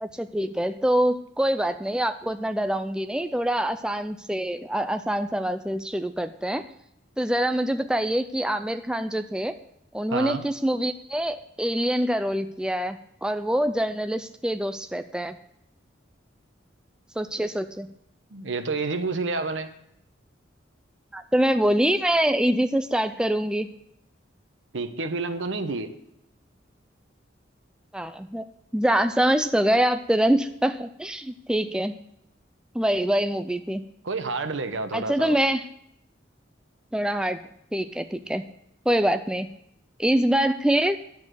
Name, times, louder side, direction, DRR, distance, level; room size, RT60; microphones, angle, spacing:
voice 1, 0.0-6.7 7.2-9.5 9.9-15.4 17.2-17.9 21.1-23.7 27.9-28.4 28.7-32.0 32.7-33.9 34.9-35.7 36.9-37.4 37.7-38.4 38.9-39.5 40.0-41.0, right 1 dB, 5° right, 9 dB, 0.3 m, -25 dB
voice 2, 10.1-10.4 18.3-19.7 24.7-25.9 34.0-35.4, right 3 dB, 85° right, 9 dB, 1.0 m, -29 dB
10.5 x 7.1 x 6.4 m, 0.76 s
head